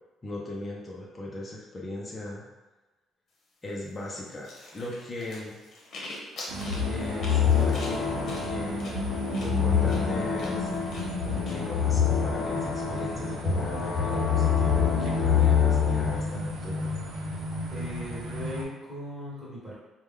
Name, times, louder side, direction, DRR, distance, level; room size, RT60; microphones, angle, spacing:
voice 1, 0.2-2.4 3.6-5.6 6.9-8.9 9.4-10.7 11.2-17.0, left 2 dB, 15° left, -3 dB, 0.5 m, -38 dB
sound 1, 4.4-11.5, left 1 dB, 45° left, 0.9 m, -43 dB
sound 2, 6.5-18.6, equal, 70° right, 0.7 m, -33 dB
sound 3, 6.7-16.2, left 8 dB, 75° left, 0.5 m, -26 dB
voice 2, 17.7-19.7, equal, ahead, -10 dB, 1.3 m, -38 dB
4.6 x 2.1 x 3.6 m, 1.1 s
cardioid pair, 175°, 0 cm